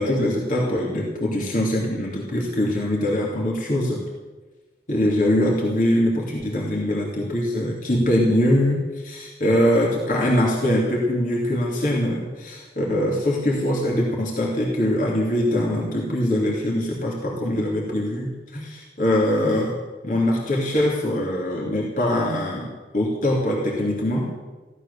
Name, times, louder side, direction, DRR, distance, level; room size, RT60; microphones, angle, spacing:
voice 1, 0.0-4.0 4.9-19.8 20.0-24.3, left 1 dB, 45° left, -3 dB, 2.8 m, -22 dB
16.0 x 13.0 x 6.9 m, 1.2 s
head